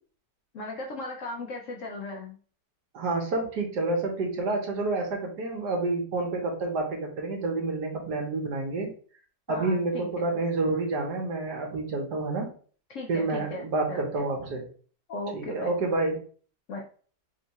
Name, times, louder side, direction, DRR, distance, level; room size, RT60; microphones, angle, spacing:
voice 1, 0.5-2.4 9.5-10.1 12.9-14.3 15.1-15.7 16.7-16.8, left 2 dB, 65° left, 1 dB, 0.8 m, -37 dB
voice 2, 2.9-8.9 9.5-12.5 13.1-14.6 15.3-16.1, right 3 dB, 75° right, 1 dB, 1.6 m, -29 dB
3.7 x 2.4 x 4.0 m, 0.43 s
omnidirectional pair, 1.8 m